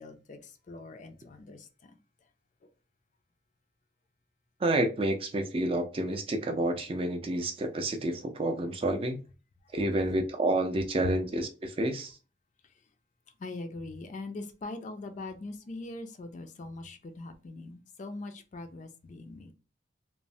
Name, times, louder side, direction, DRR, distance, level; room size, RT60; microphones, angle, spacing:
voice 1, 0.0-2.0 11.0-11.2 13.4-19.5, left 2 dB, 40° left, 0.3 m, -41 dB
voice 2, 4.6-9.2 9.7-12.2, right 1 dB, 30° right, 0.4 m, -29 dB
3.0 x 2.0 x 2.6 m
head